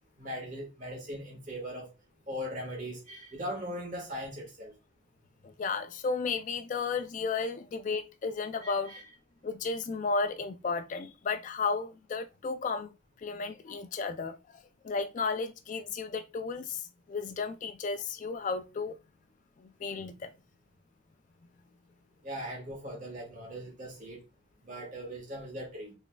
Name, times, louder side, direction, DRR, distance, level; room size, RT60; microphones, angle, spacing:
voice 1, 0.2-1.9 2.3-4.7 8.6-9.0 22.2-24.2 24.6-25.9, equal, 40° right, 1.5 m, -39 dB
voice 2, 5.4-9.0 9.4-12.9 13.2-19.0 19.6-20.3, left 4 dB, 40° left, 0.3 m, -33 dB
3.9 x 3.4 x 2.2 m
head